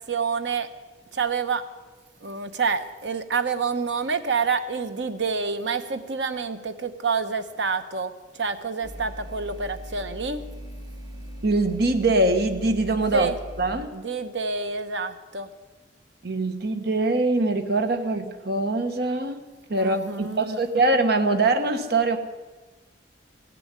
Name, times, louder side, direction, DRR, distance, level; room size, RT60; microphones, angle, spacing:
voice 1, 0.1-0.7 1.1-1.7 2.2-10.4 13.1-13.4 13.9-15.5 19.8-20.6, right 5 dB, 75° right, 10 dB, 1.0 m, -28 dB
sound 1, 8.8-13.8, equal, 20° right, 1.2 m, -39 dB
voice 2, 11.4-13.3 13.6-13.9 16.2-19.4 19.7-22.2, right 2 dB, 60° right, 7 dB, 1.2 m, -23 dB
16.0 x 7.1 x 9.7 m, 1.2 s
head